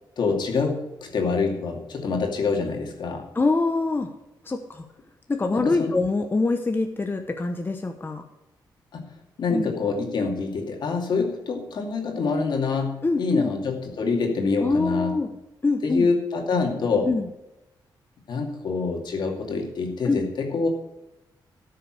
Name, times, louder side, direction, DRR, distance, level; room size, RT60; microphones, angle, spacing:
voice 1, 0.2-3.3 5.5-5.9 8.9-9.0 9.4-15.2 15.8-17.1 18.3-20.7, left 4 dB, 65° left, 2 dB, 2.5 m, -26 dB
voice 2, 3.3-4.1 4.4-4.8 5.3-8.2 9.5-9.7 13.0-13.5 14.6-15.3 15.6-16.1 17.0-17.3 20.0-20.2, left 3 dB, 25° left, 5 dB, 1.0 m, -24 dB
12.5 x 6.6 x 6.4 m, 0.95 s
cardioid pair, 95°, 8 cm